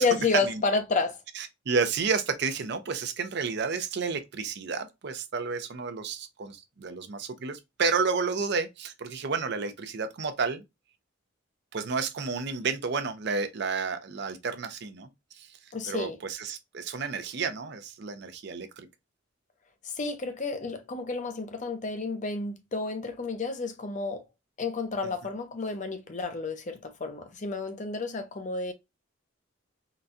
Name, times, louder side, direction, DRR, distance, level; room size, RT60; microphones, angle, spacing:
voice 1, 0.0-1.2 15.7-16.2 19.8-24.2 24.6-28.7, left 4 dB, 40° left, 0.5 m, -30 dB
voice 2, 1.4-10.6 11.7-15.1 15.3-15.5 15.9-18.9, right 5 dB, 55° right, 0.5 m, -31 dB
3.9 x 2.2 x 2.4 m
head